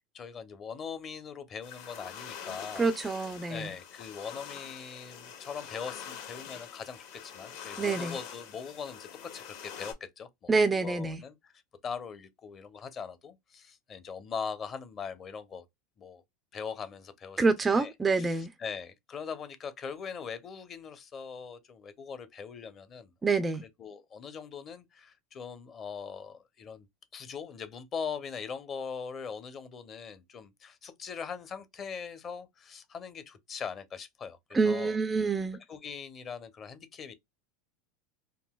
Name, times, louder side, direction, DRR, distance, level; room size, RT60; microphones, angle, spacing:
voice 1, 0.1-2.9 3.5-11.5 11.8-15.6 16.0-16.2 16.5-17.4 17.7-23.1 23.6-26.9 27.1-35.0 35.7-37.1, left 6 dB, 30° left, 0.6 m, -41 dB
sound 1, 1.6-9.9, left 8 dB, 70° left, 1.5 m, -44 dB
voice 2, 2.8-3.7 7.8-8.1 10.5-11.2 17.4-18.5 23.2-23.6 34.5-35.6, right 4 dB, 15° right, 0.3 m, -27 dB
3.7 x 2.6 x 2.2 m
supercardioid pair, 135°, 0 cm